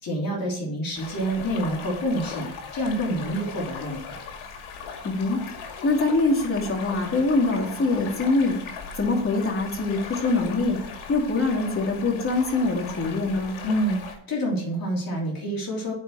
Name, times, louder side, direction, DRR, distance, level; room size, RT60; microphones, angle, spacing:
voice 1, 0.0-4.2 13.6-15.9, equal, 45° left, -3 dB, 3.4 m, -27 dB
sound 1, 0.9-14.1, left 5 dB, 80° left, 2.3 m, -38 dB
voice 2, 5.0-13.5, left 3 dB, 25° left, 0 dB, 2.7 m, -24 dB
9.4 x 4.9 x 7.5 m, 0.66 s
cardioid pair, 110°, 47 cm